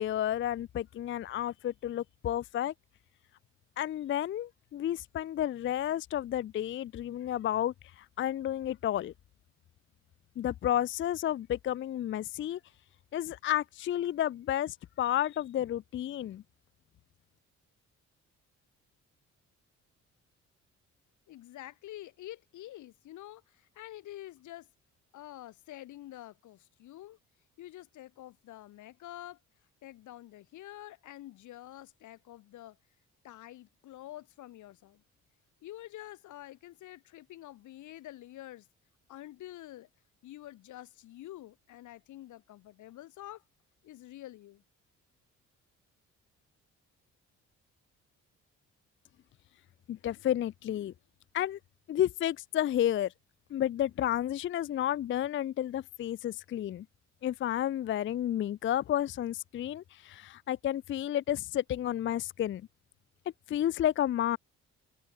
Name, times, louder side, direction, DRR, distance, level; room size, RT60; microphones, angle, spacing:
voice 1, 0.0-2.7 3.8-9.1 10.4-12.6 13.1-16.4 49.9-50.9 51.3-51.6 51.9-53.1 53.5-56.9 57.2-62.6 63.5-64.4, left 11 dB, 40° left, 0.4 m, -31 dB
voice 2, 21.3-24.7 25.1-27.2 27.6-29.4 29.8-32.8 33.2-35.0 35.6-38.7 39.1-39.9 40.2-43.4 43.8-44.6, left 14 dB, 80° left, 1.3 m, -47 dB
cardioid pair, 90°, 30 cm